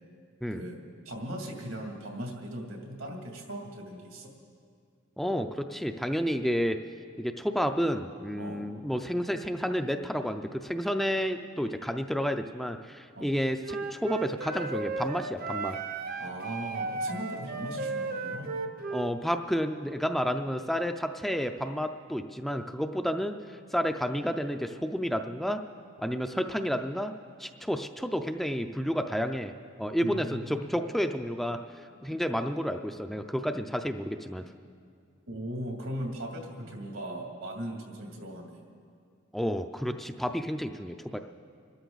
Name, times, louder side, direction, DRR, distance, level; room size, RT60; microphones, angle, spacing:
voice 1, 1.0-4.3 8.4-8.7 13.2-13.4 16.2-18.5 26.3-26.4 30.0-30.6 35.3-38.6, right 1 dB, 80° right, 1 dB, 2.5 m, -38 dB
voice 2, 5.2-6.8 7.2-15.8 18.9-25.6 26.0-27.1 27.4-29.5 29.8-34.4 39.3-41.2, equal, ahead, 6 dB, 0.4 m, -31 dB
Wind instrument woodwind instrument, 13.6-19.1, right 3 dB, 45° right, 0.7 m, -34 dB
25.0 x 13.0 x 4.0 m, 2.2 s
head